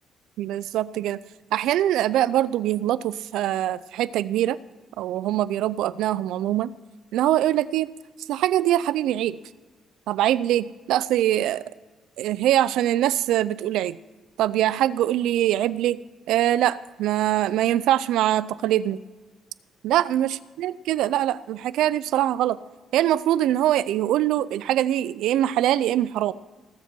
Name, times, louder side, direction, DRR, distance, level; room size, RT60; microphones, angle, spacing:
voice 1, 0.4-1.2 1.5-4.6 5.0-6.7 7.1-7.9 8.3-9.4 10.1-11.6 12.2-14.0 14.4-16.0 16.3-19.0 19.8-22.6 22.9-26.3, right 12 dB, 85° right, 18 dB, 0.4 m, -23 dB
18.5 x 7.4 x 4.5 m, 1.3 s
cardioid pair, 90°, 0 cm